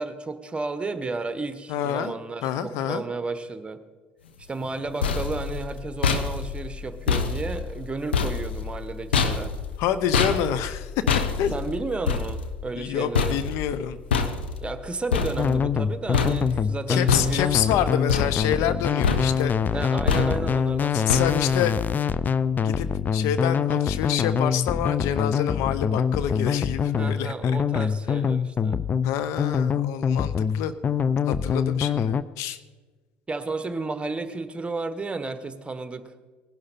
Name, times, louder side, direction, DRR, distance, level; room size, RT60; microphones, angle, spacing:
voice 1, 0.0-3.8 4.5-9.6 11.5-13.4 14.6-17.5 19.7-21.4 26.9-28.8 30.6-30.7 33.3-36.2, right 3 dB, 20° right, 10 dB, 1.3 m, -32 dB
voice 2, 1.7-2.1 2.4-3.0 9.8-11.0 11.4-11.5 12.8-14.0 16.9-19.5 20.9-21.7 22.6-27.9 29.0-30.7 31.2-32.6, left 9 dB, 65° left, 12 dB, 0.8 m, -27 dB
sound 1, 4.6-15.9 16.1-16.7 17.1-17.7 18.1-18.8 19.0-19.6 20.1-20.6 21.1-21.6, left 5 dB, 85° left, 1.0 m, -27 dB
sound 2, 15.4-32.2, left 7 dB, 30° left, 0.5 m, -24 dB
19.0 x 11.5 x 4.3 m, 1.3 s
hypercardioid pair, 65°, 6 cm